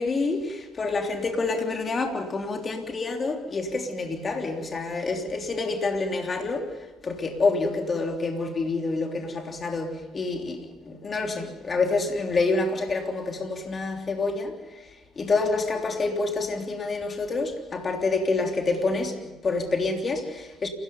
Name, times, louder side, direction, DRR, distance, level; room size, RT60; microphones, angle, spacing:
voice 1, 0.0-20.7, left 3 dB, 35° left, 3.3 m, -27 dB
29.0 x 18.0 x 5.4 m
hypercardioid pair, 50°, 0 cm